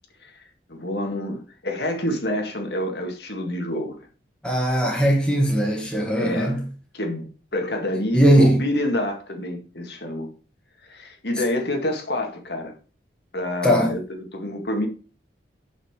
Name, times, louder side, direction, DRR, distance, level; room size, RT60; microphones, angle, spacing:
voice 1, 0.7-4.0 6.1-6.6 6.9-7.3 7.5-10.3 10.8-12.7 13.3-14.9, left 1 dB, 65° left, 1.9 m, -27 dB
voice 2, 4.4-6.6 8.1-8.6 13.6-13.9, right 1 dB, 5° left, 1.7 m, -19 dB
7.3 x 5.7 x 4.9 m
head